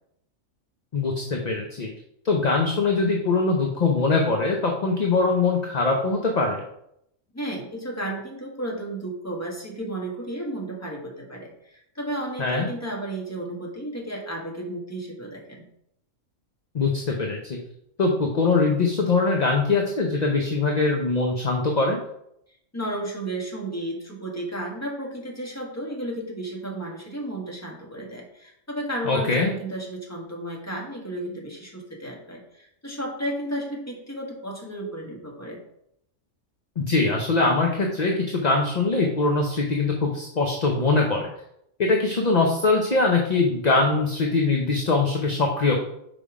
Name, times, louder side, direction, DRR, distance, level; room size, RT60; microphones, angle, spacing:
voice 1, 0.9-1.9 2.2-6.6 12.4-12.7 16.7-17.6 18.0-22.0 29.0-29.5 36.8-41.3 41.8-45.8, left 3 dB, 40° left, 1 dB, 0.8 m, -22 dB
voice 2, 7.3-15.6 22.7-35.6, right 1 dB, 10° left, -2 dB, 1.5 m, -33 dB
5.6 x 5.1 x 4.9 m, 0.76 s
omnidirectional pair, 1.3 m